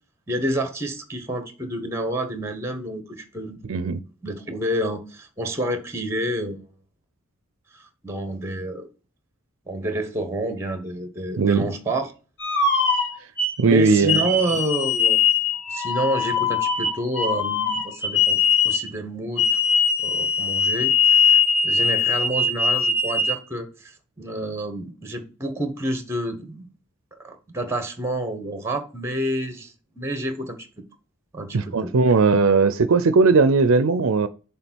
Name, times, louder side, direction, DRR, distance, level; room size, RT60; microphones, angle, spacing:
voice 1, 0.3-3.9 4.2-6.6 7.7-8.9 9.7-12.1 13.7-15.3 15.7-18.4 18.6-19.6 20.0-26.7 27.2-30.6 31.3-31.9, right 1 dB, 10° right, 1.2 m, -29 dB
voice 2, 3.7-4.0 11.4-11.7 13.6-14.2 31.5-34.3, right 4 dB, 65° right, 0.5 m, -18 dB
sound 1, 12.4-13.6 14.1-18.9 19.4-23.4, left 5 dB, 55° left, 2.1 m, -21 dB
7.0 x 3.6 x 6.1 m
head